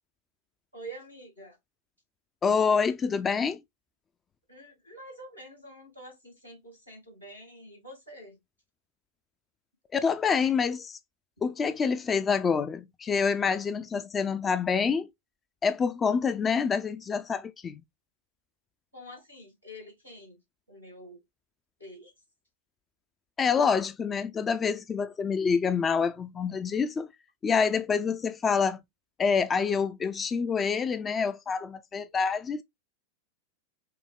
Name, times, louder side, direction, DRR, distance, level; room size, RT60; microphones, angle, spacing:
voice 1, 0.7-1.6 4.5-8.4 18.9-20.4 20.7-21.2 21.8-22.1, right 1 dB, 90° left, 2.4 m, -47 dB
voice 2, 2.4-3.6 9.9-11.0 11.4-15.1 15.6-17.8 23.4-27.1 27.4-28.8 29.2-32.6, left 6 dB, 20° left, 0.3 m, -27 dB
5.6 x 2.1 x 3.5 m
figure-of-eight pair, 90°, 0 cm